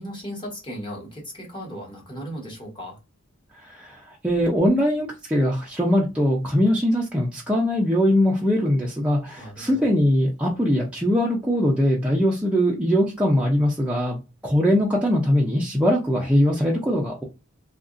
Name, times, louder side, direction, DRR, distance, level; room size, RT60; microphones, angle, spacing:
voice 1, 0.0-3.0 9.4-9.9, equal, 25° left, 1.2 m, -36 dB
voice 2, 3.5-17.2, equal, 5° right, 0.5 m, -21 dB
2.8 x 2.5 x 2.5 m
head